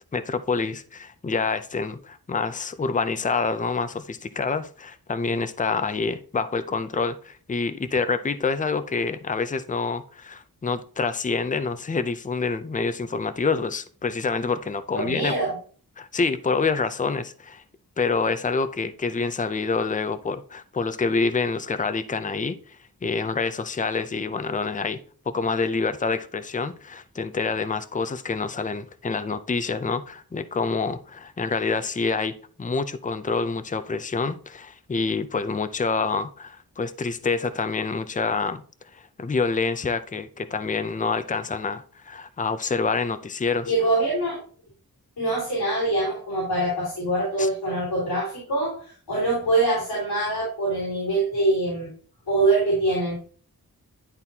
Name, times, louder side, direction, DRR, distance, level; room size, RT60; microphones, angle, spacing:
voice 1, 0.1-15.3 16.0-17.6 18.0-25.0 25.3-32.3 32.6-38.6 38.9-43.7 47.4-47.5, left 4 dB, 20° left, 0.5 m, -27 dB
voice 2, 14.9-15.5 43.6-44.4 45.2-51.9 52.3-53.2, right 2 dB, 85° left, 3.3 m, -24 dB
11.0 x 4.1 x 2.8 m
wide cardioid pair, 95°, 37 cm